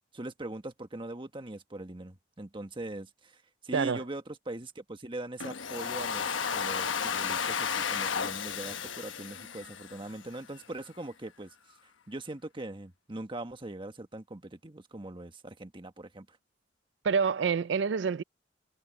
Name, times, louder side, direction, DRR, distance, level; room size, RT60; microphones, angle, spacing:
voice 1, 0.0-11.5 12.1-16.4, right 1 dB, 25° right, 1.4 m, -41 dB
voice 2, 3.7-4.0 17.0-18.2, right 6 dB, 65° right, 0.4 m, -27 dB
Domestic sounds home sounds, 5.4-10.4, left 6 dB, 80° left, 1.1 m, -33 dB
head